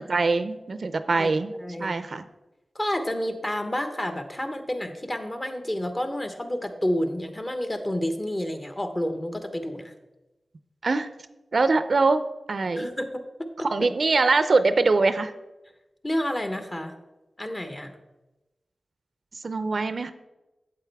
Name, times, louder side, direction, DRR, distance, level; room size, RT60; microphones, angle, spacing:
voice 1, 0.0-2.2 10.8-11.1 11.5-12.9 13.6-15.3 19.4-20.1, right 3 dB, 65° right, 11 dB, 0.5 m, -23 dB
voice 2, 1.6-1.9 2.7-9.9 12.8-13.9 16.0-16.9 17.4-17.9, left 1 dB, 30° left, 8 dB, 1.1 m, -30 dB
8.3 x 7.7 x 3.4 m, 1.0 s
cardioid pair, 40°, 0 cm